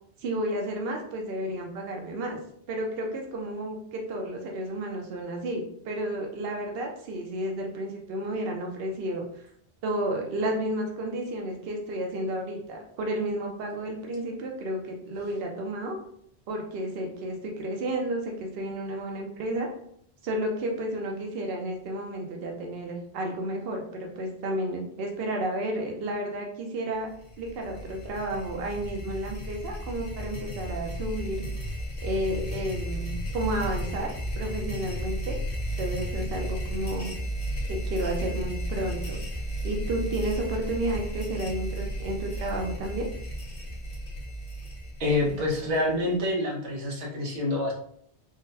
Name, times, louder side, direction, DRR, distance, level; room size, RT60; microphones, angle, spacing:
voice 1, 0.2-2.4 2.7-9.5 9.8-16.0 16.5-19.7 20.2-27.1 27.4-31.5 32.0-34.1 34.4-35.4 35.8-37.2 37.7-39.2 39.6-43.1, right 1 dB, 65° right, 1 dB, 0.8 m, -32 dB
sound 1, 27.1-46.2, equal, 40° left, 0.6 m, -34 dB
voice 2, 45.0-47.7, left 2 dB, 90° right, -2 dB, 1.2 m, -27 dB
3.7 x 2.1 x 2.6 m, 0.66 s
omnidirectional pair, 1.1 m